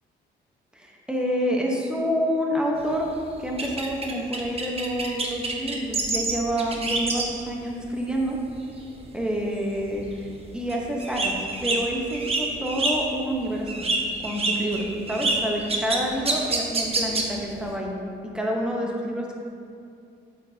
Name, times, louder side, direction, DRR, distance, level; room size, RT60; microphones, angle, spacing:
voice 1, 0.7-3.1 3.4-8.4 9.1-10.2 10.5-13.9 14.2-18.0 18.3-19.3, equal, 5° right, -1 dB, 1.0 m, -28 dB
sound 1, 2.8-7.4 7.8-8.1 8.5-9.0 9.3-9.4 9.7-13.3 13.6-17.6, right 3 dB, 30° right, 0.9 m, -27 dB
8.3 x 5.2 x 2.8 m, 2.5 s
cardioid pair, 90°, 20 cm